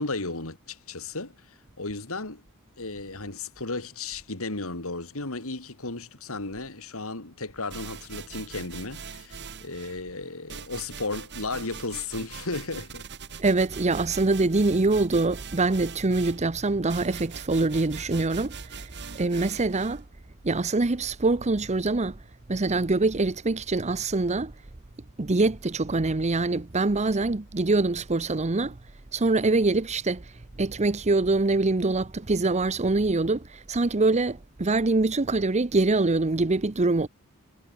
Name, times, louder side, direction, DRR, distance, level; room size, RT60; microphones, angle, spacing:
voice 1, 0.0-2.4 2.8-13.1, left 3 dB, 70° left, 3.2 m, -34 dB
sound 1, 7.7-10.0 10.5-20.0, right 5 dB, 55° right, 2.0 m, -42 dB
voice 2, 13.4-20.0 20.4-22.2 22.5-24.5 25.2-28.8 29.1-30.3 30.6-37.1, right 3 dB, 30° right, 0.8 m, -24 dB
head